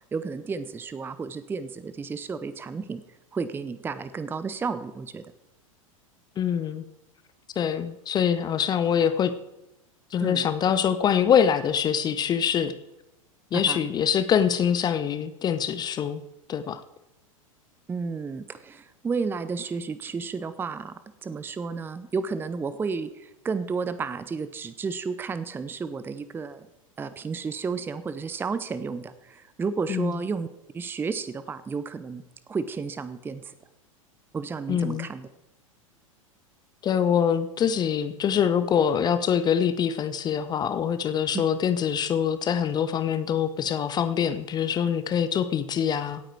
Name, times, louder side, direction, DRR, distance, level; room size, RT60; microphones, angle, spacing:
voice 1, 0.1-3.0 3.3-5.2 10.2-10.5 13.5-13.8 17.9-20.9 21.2-26.7 27.0-30.5 30.7-32.2 32.5-33.5 34.3-35.3, right 5 dB, 10° right, 13 dB, 0.7 m, -32 dB
voice 2, 6.4-6.8 7.6-9.3 10.1-12.7 13.5-16.2 16.5-16.8 29.9-30.1 34.7-35.1 36.8-46.2, left 8 dB, 25° left, 12 dB, 0.7 m, -24 dB
17.0 x 8.9 x 4.6 m, 0.93 s
figure-of-eight pair, 90°, 18 cm